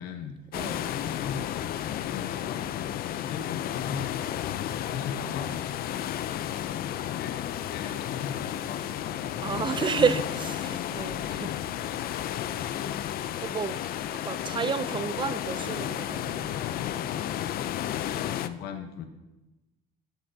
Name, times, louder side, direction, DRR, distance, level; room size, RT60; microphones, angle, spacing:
voice 1, 0.0-0.4 0.8-2.7 3.1-5.6 7.0-10.2 11.3-12.0 18.0-19.1, left 6 dB, 75° left, 0.9 m, -39 dB
sound 1, 0.5-18.5, left 11 dB, 60° left, 0.4 m, -32 dB
voice 2, 0.5-0.9 9.4-11.5 12.5-13.8 14.3-16.6, right 6 dB, 30° right, 0.5 m, -31 dB
13.0 x 7.9 x 2.7 m
cardioid pair, 110°, 17 cm